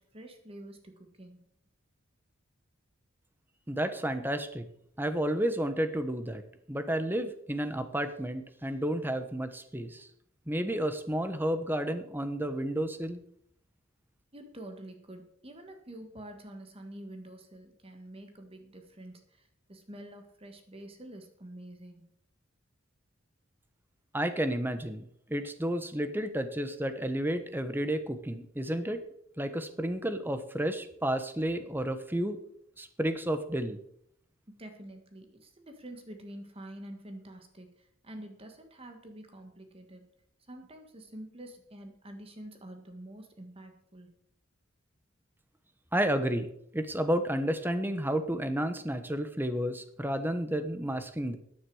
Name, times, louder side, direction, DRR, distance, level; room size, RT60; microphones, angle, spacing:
voice 1, 0.0-1.5 14.3-22.0 34.6-40.1 40.4-44.1, right 1 dB, 30° right, 5 dB, 1.6 m, -47 dB
voice 2, 3.7-4.7 5.0-6.4 6.7-10.1 10.5-13.2 24.1-29.0 29.4-32.4 32.8-33.8 45.9-51.4, right 1 dB, 10° right, 9 dB, 1.0 m, -31 dB
14.0 x 9.7 x 4.8 m, 0.70 s
head